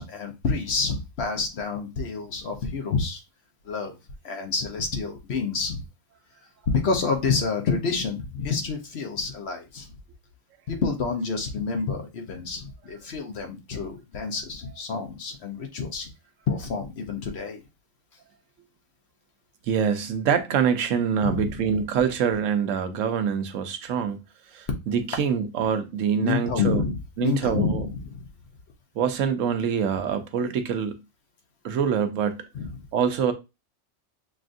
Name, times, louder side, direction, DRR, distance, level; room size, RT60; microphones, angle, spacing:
voice 1, 0.0-3.2 3.6-4.0 4.2-5.8 6.7-9.9 10.7-16.1 16.5-17.6 21.2-21.8 26.2-28.3 32.5-32.7, left 5 dB, 60° left, 1.0 m, -28 dB
voice 2, 19.7-24.2 24.5-26.8 27.2-27.8 29.0-31.0 31.6-32.4 32.9-33.3, right 7 dB, 75° right, 1.0 m, -25 dB
6.1 x 2.4 x 2.5 m
omnidirectional pair, 1.4 m